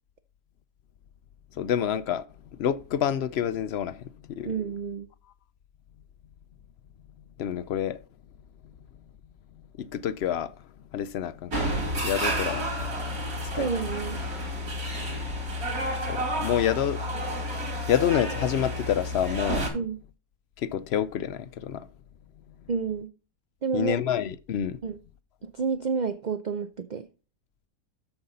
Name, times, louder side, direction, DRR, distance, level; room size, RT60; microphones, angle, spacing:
voice 1, 1.6-2.2 2.6-4.1 4.4-4.5 7.4-8.0 9.8-10.5 10.9-13.7 16.1-17.0 17.9-19.7 20.6-21.9 23.7-24.8, left 9 dB, 65° left, 0.7 m, -28 dB
voice 2, 4.4-5.1 13.6-14.2 19.7-20.0 22.7-23.1 23.6-24.0 24.8-25.0 25.4-27.1, right 5 dB, 60° right, 0.4 m, -29 dB
sound 1, 11.5-19.7, equal, 85° right, 3.1 m, -30 dB
13.0 x 5.5 x 3.9 m
omnidirectional pair, 1.5 m